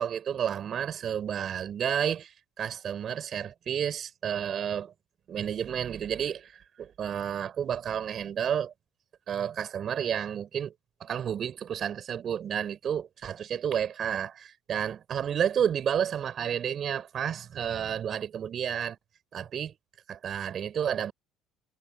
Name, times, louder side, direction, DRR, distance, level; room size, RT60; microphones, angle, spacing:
voice 1, 0.0-4.9 5.3-6.5 6.8-8.7 9.3-10.7 11.0-19.0 19.3-19.7 20.1-21.1, right 8 dB, 50° right, 5.1 m, -31 dB
supercardioid pair, 75°, 0 cm